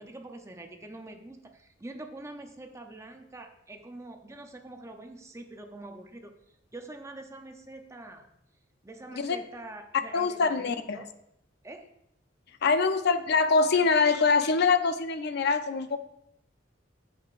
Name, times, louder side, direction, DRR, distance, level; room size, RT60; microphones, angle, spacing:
voice 1, 0.0-6.3 6.7-8.3 8.8-11.1 11.6-11.9, right 2 dB, 15° right, 5 dB, 0.6 m, -45 dB
voice 2, 10.1-11.0 12.6-16.0, left 4 dB, 55° left, 10 dB, 0.5 m, -24 dB
8.5 x 7.6 x 2.5 m, 0.80 s
head